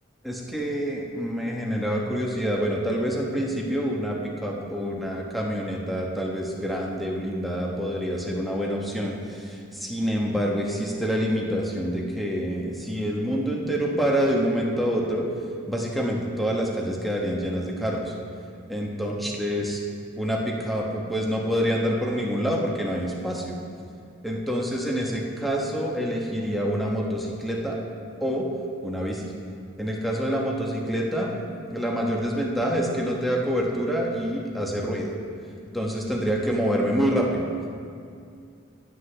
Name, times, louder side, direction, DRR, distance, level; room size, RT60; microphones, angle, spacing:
voice 1, 0.2-15.2 15.7-18.1 18.7-19.8 20.2-23.5 24.2-27.8 28.2-28.4 28.8-29.3 29.8-31.4 31.7-35.1 35.7-37.5, equal, ahead, -2 dB, 1.1 m, -27 dB
15.5 x 7.9 x 3.4 m, 2.3 s
head